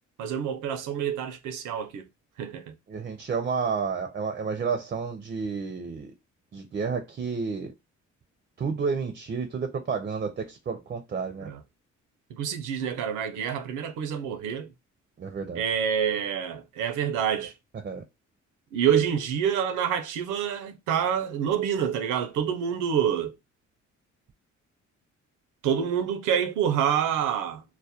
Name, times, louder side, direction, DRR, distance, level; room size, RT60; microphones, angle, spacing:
voice 1, 0.2-2.1 2.4-2.7 11.4-11.6 12.3-14.7 15.5-17.5 18.7-23.3 25.6-27.6, right 8 dB, 90° right, 0.5 m, -27 dB
voice 2, 2.9-6.1 6.5-7.7 8.6-11.5 15.2-15.6 17.8-18.0, right 5 dB, 30° right, 0.4 m, -30 dB
2.3 x 2.0 x 2.7 m
cardioid pair, 90°, 30 cm